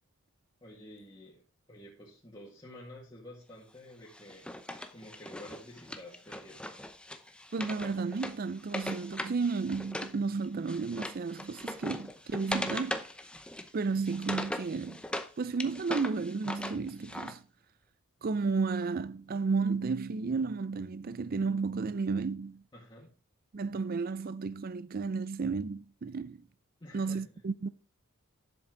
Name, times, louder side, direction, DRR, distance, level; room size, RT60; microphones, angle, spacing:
voice 1, 0.6-1.4 1.7-4.5 4.9-6.8 22.7-23.1 26.8-27.4, left 1 dB, 20° left, 2.0 m, -50 dB
Wood, 4.1-10.2 10.4-15.3 15.6-17.3, left 1 dB, 5° left, 0.7 m, -39 dB
voice 2, 7.5-13.0 13.7-15.0 15.4-17.4 18.2-22.6 23.5-26.4 26.9-27.7, right 4 dB, 45° right, 0.4 m, -32 dB
10.5 x 7.3 x 3.8 m
head